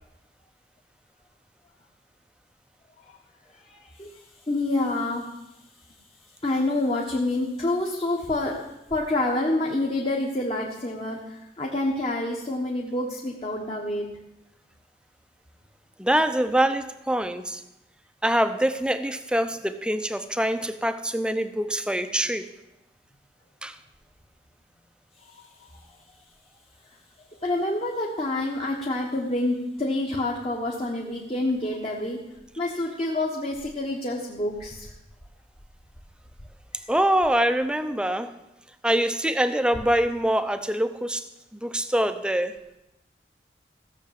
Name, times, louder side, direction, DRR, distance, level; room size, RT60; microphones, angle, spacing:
voice 1, 3.7-4.1 4.5-5.2 6.4-8.6 8.9-14.1 27.4-32.2 32.6-34.9, left 2 dB, 35° left, -2 dB, 1.4 m, -27 dB
voice 2, 16.0-17.6 18.2-22.5 23.6-23.8 36.9-38.3 38.8-41.3 41.5-42.6, right 1 dB, 5° right, 10 dB, 0.6 m, -24 dB
15.5 x 6.6 x 7.6 m, 0.92 s
head